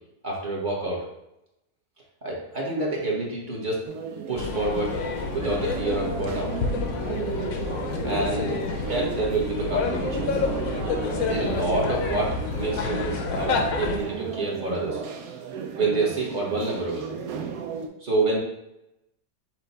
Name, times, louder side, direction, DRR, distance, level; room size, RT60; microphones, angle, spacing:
voice 1, 0.2-1.0 2.2-3.8 4.3-5.0 5.3-6.5 8.0-8.6 8.9-10.4 11.3-15.0 15.8-17.1 18.0-18.4, right 2 dB, 35° right, -4 dB, 1.0 m, -27 dB
sound 1, 3.8-17.9, right 6 dB, 75° right, 1.0 m, -34 dB
sound 2, 4.4-14.0, left 5 dB, 70° left, 1.0 m, -29 dB
5.8 x 2.2 x 4.0 m, 0.85 s
omnidirectional pair, 1.6 m